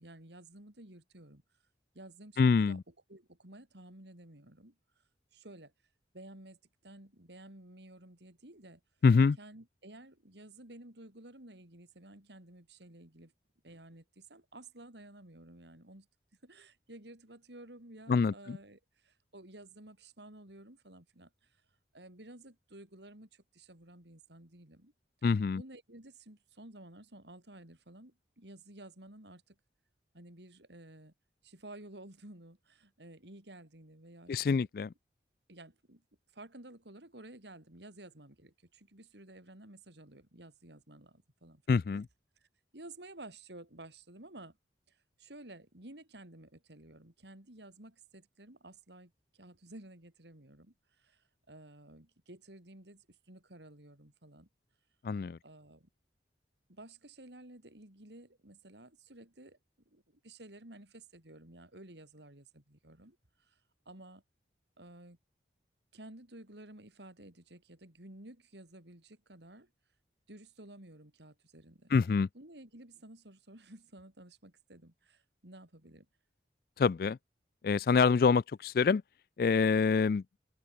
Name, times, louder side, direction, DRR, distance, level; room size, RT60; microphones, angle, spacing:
voice 1, 0.0-1.4 1.9-2.8 3.1-4.8 5.3-5.7 6.1-8.8 9.4-13.3 13.6-16.1 16.4-21.5 21.9-24.9 25.5-29.6 30.1-31.1 31.4-34.7 35.5-36.0 36.3-42.0 42.4-42.5 42.7-44.6 44.9-54.5 55.4-55.9 56.7-59.6 59.9-63.6 63.9-64.2 64.8-65.2 65.9-69.7 70.3-71.9 72.3-76.1, right 1 dB, 75° right, 4.0 m, -53 dB
voice 2, 2.4-2.8 9.0-9.4 18.1-18.6 25.2-25.6 34.3-34.9 41.7-42.1 55.0-55.4 71.9-72.3 76.8-77.2 77.6-79.0 79.4-80.2, left 5 dB, 55° left, 0.3 m, -26 dB
head